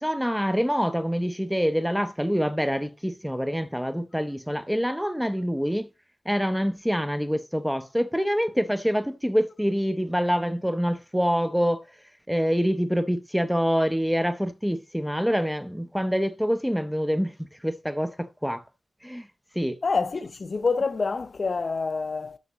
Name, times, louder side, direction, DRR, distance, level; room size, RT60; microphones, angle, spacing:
voice 1, 0.0-5.9 6.3-12.0 12.3-18.6 19.0-19.3 19.5-19.8, equal, ahead, 0.6 m, -26 dB
voice 2, 19.8-22.4, left 4 dB, 45° left, 0.7 m, -27 dB
8.1 x 5.9 x 4.0 m
wide cardioid pair, 120°, 0 cm